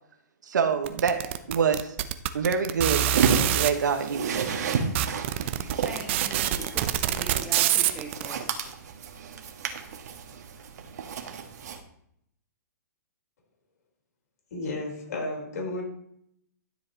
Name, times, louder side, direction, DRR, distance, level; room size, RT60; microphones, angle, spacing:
voice 1, 0.5-2.0 2.3-4.4 5.6-5.7 6.4-6.7, right 6 dB, 80° right, 6 dB, 1.3 m, -27 dB
sound 1, 0.9-3.7 4.4-4.5 4.7-8.3, right 12 dB, 40° right, 0.7 m, -25 dB
sound 2, 3.1-11.8, right 6 dB, 65° right, 1.5 m, -31 dB
voice 2, 5.8-8.5, right 2 dB, 10° right, 0 dB, 1.8 m, -40 dB
voice 3, 14.5-15.8, left 2 dB, 65° left, 1 dB, 4.1 m, -32 dB
13.0 x 7.6 x 3.0 m, 0.71 s
hypercardioid pair, 150°, 10 cm